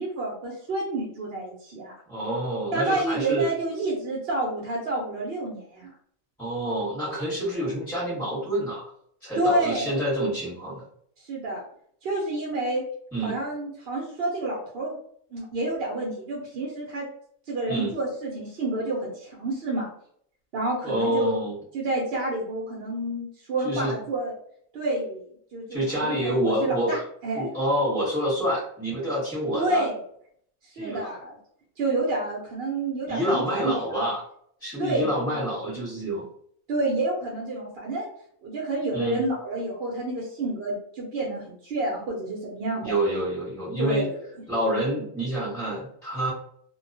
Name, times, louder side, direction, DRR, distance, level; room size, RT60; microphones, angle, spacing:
voice 1, 0.0-2.0 2.7-5.9 9.3-10.0 11.2-11.6 12.0-12.8 13.2-15.0 15.3-17.1 17.5-19.9 20.5-21.3 21.7-24.3 24.7-25.2 25.5-27.5 29.5-30.0 30.6-31.4 31.8-34.1 34.8-35.5 35.8-35.9 36.7-38.1 38.4-43.0 43.8-44.2, right 2 dB, 60° right, -3 dB, 0.7 m, -29 dB
voice 2, 2.1-3.5 6.4-8.9 9.2-10.8 13.1-13.4 17.7-17.9 20.8-21.6 23.6-23.9 25.7-26.9 27.3-29.9 30.7-31.1 33.1-34.2 34.6-36.2 38.9-39.2 42.8-44.1 44.5-46.3, right 1 dB, ahead, -9 dB, 0.9 m, -27 dB
2.3 x 2.2 x 2.5 m, 0.64 s
omnidirectional pair, 1.4 m